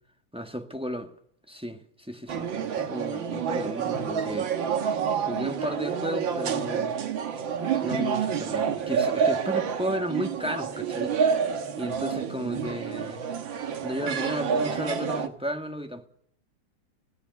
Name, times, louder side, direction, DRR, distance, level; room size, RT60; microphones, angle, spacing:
voice 1, 0.3-1.1 1.5-4.5 5.3-6.9 7.8-11.2 11.8-13.2 13.8-16.1, equal, 5° right, 1.3 m, -34 dB
sound 1, 2.3-15.3, right 7 dB, 80° right, 2.1 m, -28 dB
17.0 x 16.0 x 9.5 m
omnidirectional pair, 2.1 m